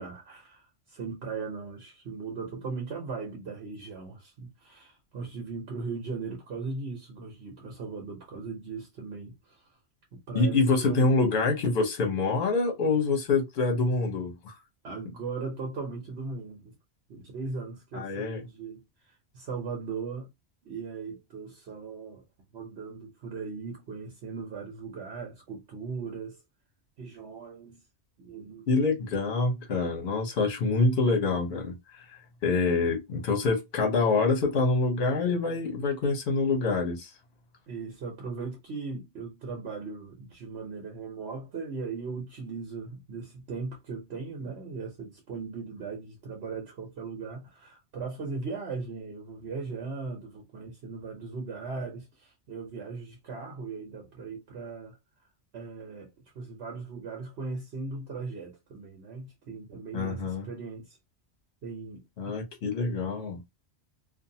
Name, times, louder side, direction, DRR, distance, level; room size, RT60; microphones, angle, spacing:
voice 1, 0.0-9.8 10.1-11.1 14.8-16.7 17.1-20.3 20.6-22.2 22.5-26.4 27.0-27.8 28.2-28.7 29.3-29.4 37.7-55.0 55.5-61.0 61.6-62.4 62.7-63.1, right 4 dB, 70° right, 1.0 m, -38 dB
voice 2, 10.3-14.5 17.9-18.4 28.7-31.8 32.4-37.1 59.9-60.4 62.2-63.4, left 3 dB, 70° left, 1.1 m, -26 dB
2.6 x 2.4 x 2.7 m
omnidirectional pair, 1.1 m